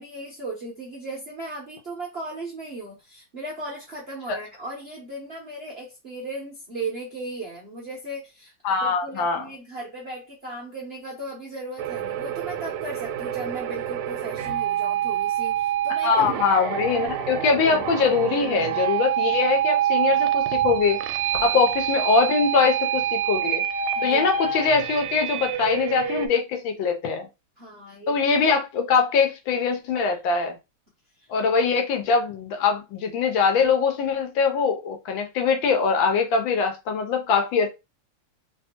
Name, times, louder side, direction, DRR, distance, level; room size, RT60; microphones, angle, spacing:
voice 1, 0.0-16.4 21.4-21.5 23.9-24.3 27.6-28.2, right 2 dB, 55° right, 0.7 m, -36 dB
voice 2, 8.6-9.4 16.0-21.0 21.4-23.6 24.0-27.3 28.1-30.6 31.3-37.7, left 5 dB, 75° left, 1.3 m, -22 dB
sound 1, 11.8-26.3, right 9 dB, 75° right, 1.3 m, -26 dB
3.4 x 2.7 x 2.8 m
omnidirectional pair, 2.4 m